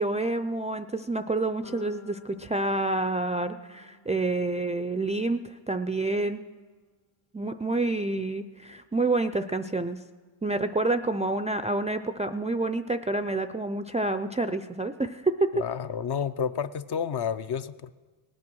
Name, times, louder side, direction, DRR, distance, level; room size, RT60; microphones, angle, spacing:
voice 1, 0.0-6.4 7.3-10.0 10.4-15.5, right 2 dB, 15° right, 7 dB, 0.3 m, -28 dB
sound 1, 1.6-5.7, left 5 dB, 75° left, 1.9 m, -52 dB
voice 2, 15.5-17.9, left 7 dB, 55° left, 11 dB, 0.6 m, -30 dB
18.5 x 8.7 x 6.2 m, 1.4 s
cardioid pair, 85°, 49 cm